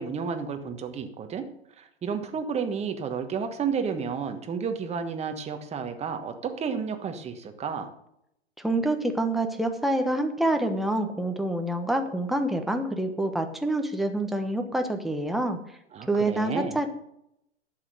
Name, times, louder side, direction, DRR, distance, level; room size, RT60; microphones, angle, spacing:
voice 1, 0.0-1.5 1.8-7.9 15.9-16.8, right 6 dB, 20° right, 6 dB, 1.3 m, -31 dB
voice 2, 8.6-15.6 16.1-16.9, right 1 dB, ahead, 5 dB, 1.1 m, -27 dB
11.5 x 7.8 x 6.6 m, 0.78 s
hypercardioid pair, 110°, 35 cm